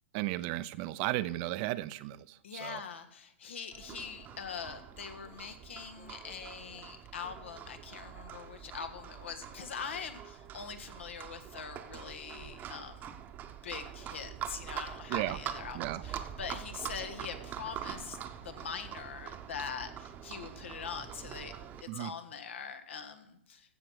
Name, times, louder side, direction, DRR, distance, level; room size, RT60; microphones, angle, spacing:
voice 1, 0.1-2.8 15.1-15.4 15.7-16.0 21.9-22.1, right 16 dB, 45° right, 15 dB, 0.5 m, -35 dB
voice 2, 2.4-13.2 13.6-18.2 18.4-23.7, left 6 dB, 80° left, 8 dB, 1.5 m, -43 dB
Livestock farm animals working animals, 3.7-21.8, right 9 dB, 25° right, 0.9 m, -44 dB
15.0 x 5.9 x 6.3 m, 0.78 s
hypercardioid pair, 125°, 7 cm